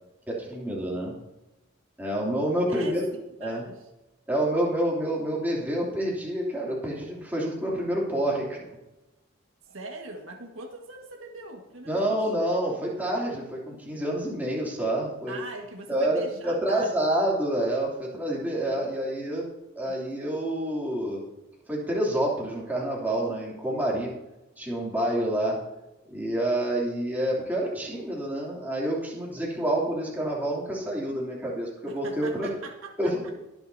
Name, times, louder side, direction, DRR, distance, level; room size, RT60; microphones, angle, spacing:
voice 1, 0.3-1.1 2.0-3.0 3.4-3.6 4.3-8.7 11.8-15.4 15.9-19.5 19.8-21.2 21.7-24.1 24.6-25.5 26.1-32.5 33.0-33.3, right 1 dB, 10° right, -4 dB, 3.1 m, -28 dB
voice 2, 2.7-3.9 9.7-12.2 15.3-17.1 18.6-19.1 19.9-20.0 31.9-33.3, right 2 dB, 75° right, 2 dB, 1.8 m, -42 dB
22.0 x 8.0 x 2.8 m, 0.99 s
head